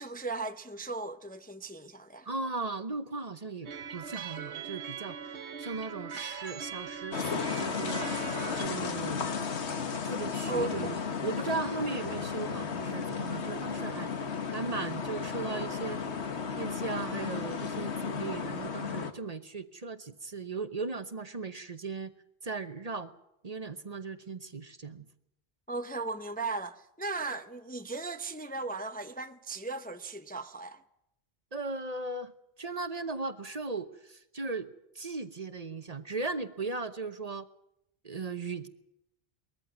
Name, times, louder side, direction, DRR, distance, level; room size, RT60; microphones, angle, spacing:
voice 1, 0.0-2.3 10.5-11.0 25.7-30.8, right 3 dB, 10° left, 0.6 m, -37 dB
voice 2, 2.3-5.3 5.6-8.0 8.6-9.2 10.0-14.1 14.5-16.0 16.6-22.1 22.4-23.1 23.4-25.1 31.5-32.3 32.6-37.5 38.0-38.7, right 3 dB, 40° right, 1.0 m, -37 dB
sound 1, 3.6-8.7, right 7 dB, 80° right, 1.2 m, -41 dB
sound 2, 7.1-19.1, left 6 dB, 85° left, 1.5 m, -34 dB
21.0 x 14.5 x 9.5 m
omnidirectional pair, 1.1 m